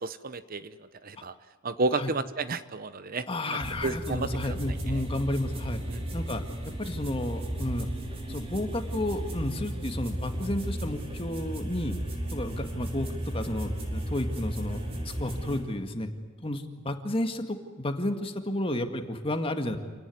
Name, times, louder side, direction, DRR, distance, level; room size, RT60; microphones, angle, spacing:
voice 1, 0.0-1.3 1.6-4.3 4.9-5.0 5.9-6.0, right 3 dB, 45° right, 13 dB, 0.9 m, -32 dB
voice 2, 3.3-5.8 6.1-6.4 6.8-7.9 8.3-11.9 12.3-14.8 15.2-16.1 16.4-19.8, left 1 dB, 30° left, 6 dB, 2.0 m, -32 dB
sound 1, 3.6-15.6, right 1 dB, 30° right, 5.0 m, -34 dB
28.0 x 18.0 x 9.6 m, 1.5 s
head